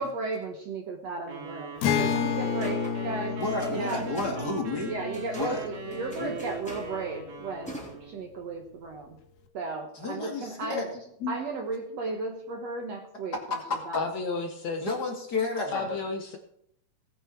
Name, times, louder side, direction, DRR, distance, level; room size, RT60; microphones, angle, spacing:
voice 1, 0.0-3.4 3.7-4.4 4.9-9.2 9.5-10.9 11.3-14.0, right 3 dB, 60° right, 4 dB, 1.8 m, -35 dB
sound 1, 1.3-8.2, right 4 dB, 85° right, 4.6 m, -40 dB
Acoustic guitar, 1.8-7.3, left 7 dB, 80° left, 3.2 m, -32 dB
sound 2, 2.1-7.9, equal, ahead, 2.3 m, -46 dB
voice 2, 3.4-5.0 5.3-5.6 6.2-6.4 9.9-10.9 13.3-13.8 14.8-16.0, left 3 dB, 30° left, 1 dB, 2.2 m, -31 dB
voice 3, 13.9-14.9 15.7-16.4, left 4 dB, 60° left, 4 dB, 2.1 m, -31 dB
17.5 x 10.5 x 4.6 m, 0.71 s
omnidirectional pair, 4.2 m